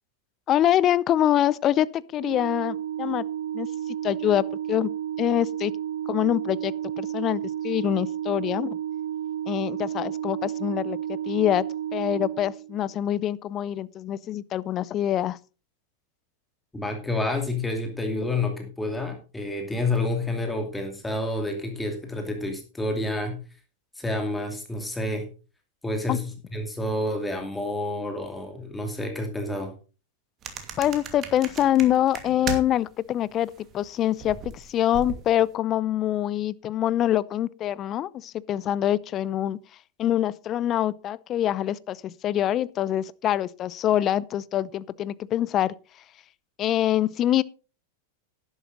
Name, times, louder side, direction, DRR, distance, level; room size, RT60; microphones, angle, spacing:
voice 1, 0.5-3.2 3.5-3.7 4.0-4.9 5.2-5.7 6.1-8.8 9.5-11.6 11.9-15.4 26.1-26.2 30.8-39.6 40.0-45.7 46.6-47.4, left 12 dB, 35° left, 0.6 m, -25 dB
Organ, 2.1-13.0, right 10 dB, 75° right, 2.4 m, -32 dB
voice 2, 16.7-23.4 24.0-25.3 25.8-29.7, left 2 dB, 10° left, 2.6 m, -29 dB
sound 1, 30.4-32.9 33.2-35.5, right 7 dB, 35° right, 2.5 m, -37 dB
11.5 x 11.0 x 3.9 m
figure-of-eight pair, 95°, 0 cm